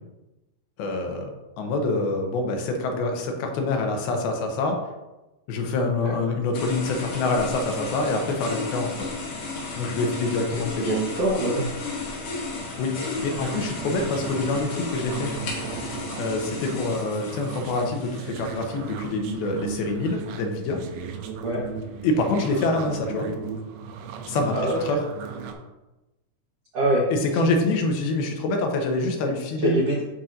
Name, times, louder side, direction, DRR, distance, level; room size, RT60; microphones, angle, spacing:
voice 1, 0.8-1.3 1.6-4.8 5.5-9.1 9.8-11.0 12.8-15.3 16.2-20.8 22.0-23.3 24.3-24.5 24.8-25.0 27.1-29.8, left 3 dB, 85° left, 3 dB, 2.8 m, -26 dB
sound 1, 6.5-18.8, left 3 dB, 65° left, 3.1 m, -34 dB
voice 2, 10.8-11.7 21.4-21.6 24.5-25.0 26.7-27.0 27.4-27.5 29.6-30.0, right 1 dB, 70° right, -5 dB, 1.4 m, -24 dB
sound 2, 13.2-25.5, right 6 dB, 85° right, 2.6 m, -36 dB
12.0 x 4.3 x 2.6 m, 1.0 s
omnidirectional pair, 4.3 m